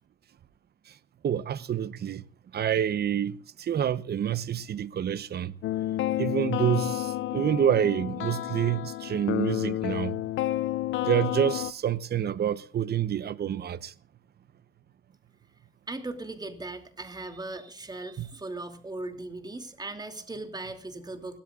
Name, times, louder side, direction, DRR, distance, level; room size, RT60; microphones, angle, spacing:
voice 1, 1.2-2.2 2.5-5.5 6.2-10.2 11.0-13.9 18.2-18.3, right 9 dB, 55° right, 0.9 m, -28 dB
sound 1, 5.6-11.7, left 14 dB, 75° left, 0.6 m, -30 dB
voice 2, 15.9-21.4, right 2 dB, 20° right, 2.8 m, -38 dB
29.5 x 13.0 x 2.5 m
cardioid pair, 90°, 20 cm